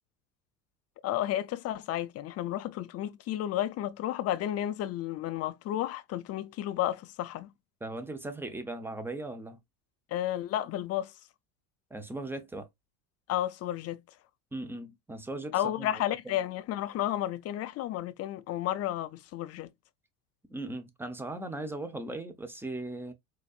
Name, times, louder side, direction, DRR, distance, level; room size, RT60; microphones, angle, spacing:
voice 1, 1.0-7.5 10.1-11.2 13.3-14.0 15.5-19.7, left 12 dB, 35° left, 0.5 m, -32 dB
voice 2, 7.8-9.6 11.9-12.7 14.5-15.9 20.5-23.1, right 2 dB, 5° right, 0.7 m, -38 dB
4.1 x 2.8 x 2.4 m
hypercardioid pair, 85°, 47 cm